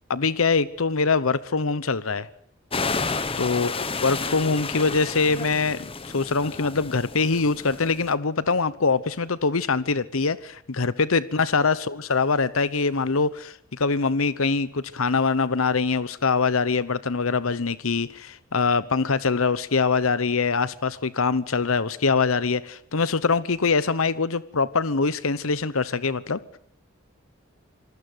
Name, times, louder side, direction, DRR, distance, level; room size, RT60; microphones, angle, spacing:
voice 1, 0.1-2.3 3.4-3.7 4.0-26.4, left 4 dB, 85° left, 1.0 m, -23 dB
sound 1, 2.7-8.1, left 4 dB, 25° left, 1.2 m, -31 dB
26.5 x 20.0 x 8.0 m
head